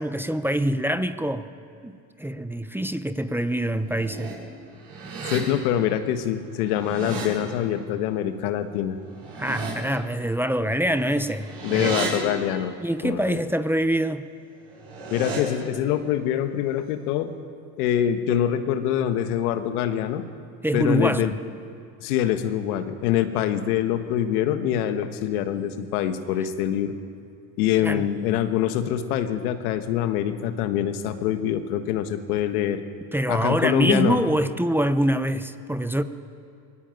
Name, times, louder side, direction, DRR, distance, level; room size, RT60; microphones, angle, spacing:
voice 1, 0.0-1.5 1.8-1.9 2.2-4.4 9.4-12.1 12.8-14.2 20.6-21.4 27.8-28.0 33.1-36.0, right 1 dB, 5° right, 11 dB, 0.9 m, -25 dB
sound 1, 3.7-4.3 4.8-5.4 6.5-7.3 9.1-9.7 11.0-12.1 14.6-15.4, right 4 dB, 60° right, 7.3 m, -34 dB
voice 2, 5.3-9.0 11.6-12.7 13.0-13.4 15.1-17.3 17.8-20.2 20.7-21.3 22.0-26.9 27.6-32.8 33.3-34.2, left 10 dB, 85° left, 9 dB, 1.5 m, -25 dB
20.0 x 16.0 x 9.1 m, 2.5 s
supercardioid pair, 85°, 43 cm